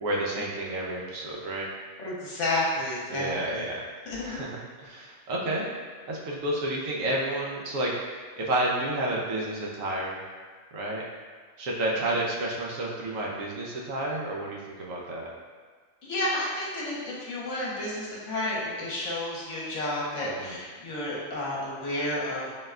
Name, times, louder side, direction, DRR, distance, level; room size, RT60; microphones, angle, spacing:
voice 1, 0.0-1.7 3.1-3.8 4.1-5.7 6.1-7.9 8.4-10.2 10.7-11.0 11.6-15.3 20.4-20.6, right 1 dB, 70° right, -3 dB, 1.0 m, -30 dB
voice 2, 2.0-3.6 4.1-4.4 12.0-12.1 16.0-22.5, left 1 dB, 60° left, -5 dB, 1.1 m, -31 dB
4.2 x 2.2 x 3.6 m, 1.5 s
omnidirectional pair, 1.5 m